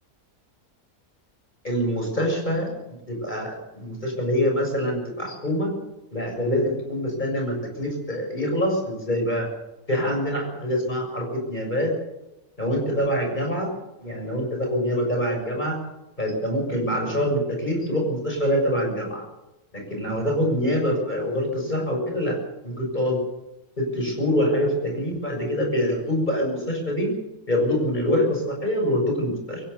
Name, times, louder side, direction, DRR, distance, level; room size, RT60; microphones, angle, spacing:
voice 1, 1.6-2.7 3.1-5.7 6.1-9.5 9.9-11.9 12.6-13.7 14.0-15.8 16.2-19.2 19.7-22.4 22.6-23.2 23.8-27.1 27.5-29.6, equal, 30° left, 2 dB, 7.1 m, -25 dB
24.5 x 16.5 x 7.1 m, 0.94 s
omnidirectional pair, 1.6 m